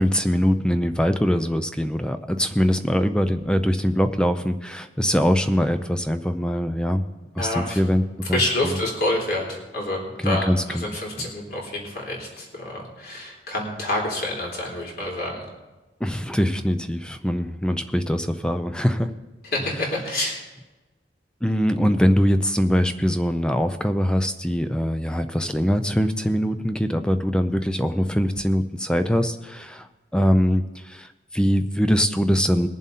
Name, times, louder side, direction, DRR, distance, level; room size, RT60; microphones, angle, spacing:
voice 1, 0.0-7.0 7.4-8.0 8.3-8.8 10.2-10.9 11.2-11.3 16.0-19.1 21.4-32.7, equal, 5° left, 9 dB, 0.4 m, -22 dB
voice 2, 7.4-7.8 8.3-15.4 19.5-20.4, left 1 dB, 55° left, -2 dB, 3.6 m, -27 dB
21.0 x 7.4 x 4.2 m, 1.1 s
head